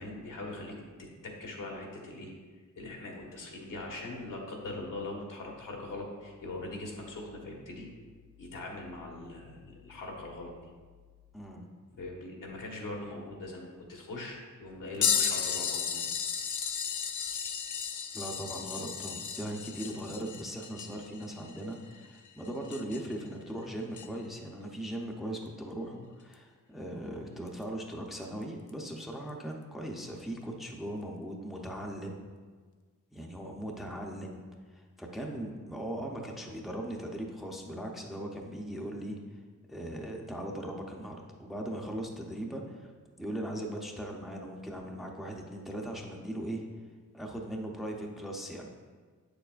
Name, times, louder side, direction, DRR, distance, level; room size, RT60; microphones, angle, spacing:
voice 1, 0.0-2.3 2.8-7.9 8.4-10.5 12.0-16.1, left 2 dB, 85° left, -1 dB, 1.4 m, -41 dB
voice 2, 11.3-11.7 18.1-32.2 33.1-34.4 34.7-39.4 39.7-42.9 43.2-46.6 47.1-48.7, right 1 dB, ahead, 0 dB, 0.6 m, -39 dB
sound 1, 15.0-23.2 23.9-24.1 26.3-26.4 27.5-27.6 28.7-28.8, left 7 dB, 65° left, 0.5 m, -34 dB
8.2 x 6.9 x 2.4 m, 1.5 s
wide cardioid pair, 135°, 32 cm